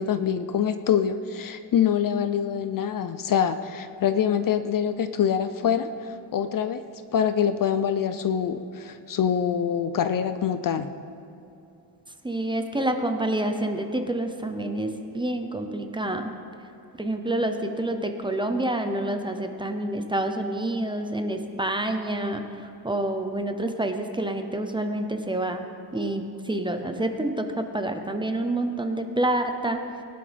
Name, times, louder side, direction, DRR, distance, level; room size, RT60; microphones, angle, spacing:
voice 1, 0.0-6.8 7.1-10.9, left 8 dB, 45° left, 11 dB, 0.5 m, -25 dB
voice 2, 12.2-16.3 17.0-25.7 25.9-29.8, right 1 dB, 10° right, 6 dB, 0.6 m, -28 dB
21.0 x 11.0 x 3.4 m, 2.8 s
cardioid pair, 140°, 46 cm